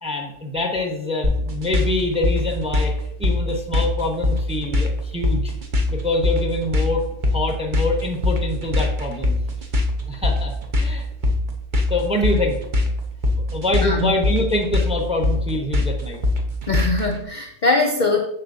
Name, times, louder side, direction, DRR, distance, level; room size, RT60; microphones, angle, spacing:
voice 1, 0.0-2.9 3.2-5.5 5.9-7.0 7.3-9.4 10.1-11.1 11.9-12.6 13.3-16.2, left 2 dB, 5° right, 2 dB, 0.6 m, -25 dB
sound 1, 1.2-17.1, left 2 dB, 40° right, 0.8 m, -22 dB
voice 2, 13.8-14.1 16.7-18.2, left 3 dB, 55° left, 3 dB, 0.5 m, -21 dB
7.7 x 6.2 x 2.7 m, 0.77 s
omnidirectional pair, 1.6 m